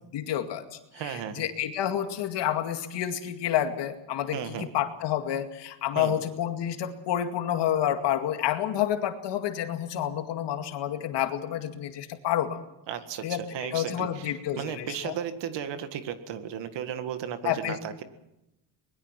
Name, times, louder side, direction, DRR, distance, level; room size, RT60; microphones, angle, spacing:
voice 1, 0.1-0.8 1.0-12.6 13.2-13.4 13.7-15.1 17.4-17.8, left 11 dB, 65° left, 6 dB, 2.2 m, -29 dB
voice 2, 0.9-1.4 4.3-4.7 6.0-6.2 12.9-18.0, right 9 dB, 65° right, 9 dB, 1.9 m, -35 dB
23.0 x 21.0 x 6.0 m, 0.90 s
cardioid pair, 125°, 46 cm